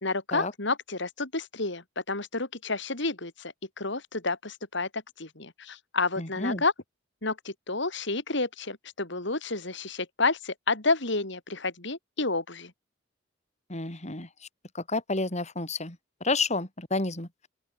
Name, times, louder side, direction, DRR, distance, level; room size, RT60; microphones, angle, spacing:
voice 1, 0.0-4.9 5.2-6.7 7.2-12.7, left 3 dB, 65° left, 4.3 m, -30 dB
voice 2, 6.2-6.6 13.7-14.3 14.7-16.0 16.2-17.3, left 3 dB, 35° left, 4.1 m, -30 dB
open air
head